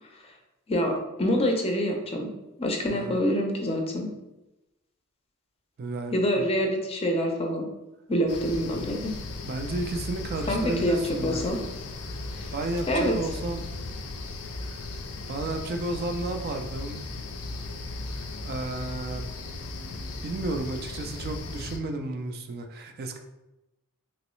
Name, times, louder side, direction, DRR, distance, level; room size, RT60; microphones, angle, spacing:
voice 1, 0.7-2.3 2.6-4.1 6.1-7.7 8.1-9.1 10.5-11.6 12.3-12.5 12.9-13.2, equal, 25° left, 2 dB, 0.5 m, -26 dB
voice 2, 5.8-6.4 9.4-11.5 12.5-13.6 14.6-14.8 15.3-17.0 18.2-19.3 19.5-19.7 20.2-23.2, right 2 dB, 45° right, 5 dB, 0.3 m, -33 dB
sound 1, 8.3-21.8, left 2 dB, 80° left, 0.5 m, -36 dB
3.1 x 3.0 x 3.0 m, 0.97 s
head